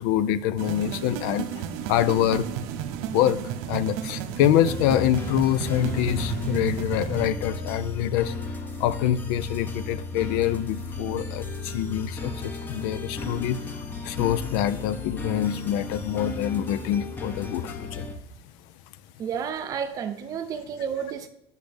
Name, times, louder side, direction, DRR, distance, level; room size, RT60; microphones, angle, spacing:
voice 1, 0.0-2.5 3.1-3.4 3.7-8.3 8.8-13.6 14.0-18.1, left 11 dB, 80° left, 16 dB, 0.4 m, -25 dB
sound 1, 0.6-7.3, right 9 dB, 85° right, 0.6 m, -33 dB
sound 2, 4.6-18.1, left 3 dB, 20° left, 0.7 m, -34 dB
voice 2, 19.2-21.3, right 7 dB, 35° right, 8 dB, 0.6 m, -31 dB
8.2 x 6.5 x 3.4 m, 0.81 s
cardioid pair, 165°, 11 cm